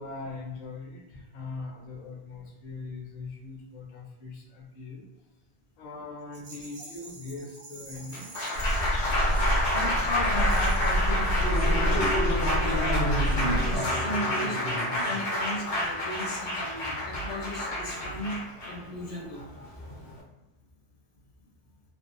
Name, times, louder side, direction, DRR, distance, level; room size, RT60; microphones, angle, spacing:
voice 1, 0.0-5.1 5.8-8.3, left 3 dB, 45° left, -2 dB, 0.6 m, -41 dB
Rattle, 6.3-10.0 10.4-11.1, right 2 dB, 90° right, 1.2 m, -48 dB
Applause, 7.9-20.2, left 1 dB, 90° left, 1.2 m, -29 dB
sound 1, 8.5-13.8, equal, 60° right, 0.9 m, -27 dB
voice 2, 9.7-18.4 18.6-19.5 19.8-20.2, left 1 dB, 70° left, -2 dB, 1.0 m, -35 dB
3.4 x 2.0 x 2.5 m, 1.0 s
omnidirectional pair, 1.1 m